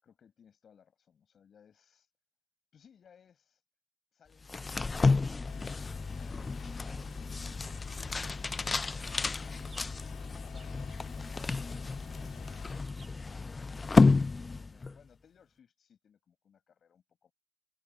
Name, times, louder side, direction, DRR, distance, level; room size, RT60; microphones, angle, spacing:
voice 1, 0.0-2.1 2.7-3.4 4.1-6.5 10.3-17.3, left 7 dB, 60° left, 5.9 m, -63 dB
sound 1, 4.4-15.0, left 3 dB, 30° left, 0.4 m, -31 dB
sound 2, 5.4-12.8, left 11 dB, 80° left, 2.8 m, -51 dB
Chirp tweet, 8.0-13.2, right 4 dB, 35° right, 3.5 m, -60 dB
supercardioid pair, 65°, 0 cm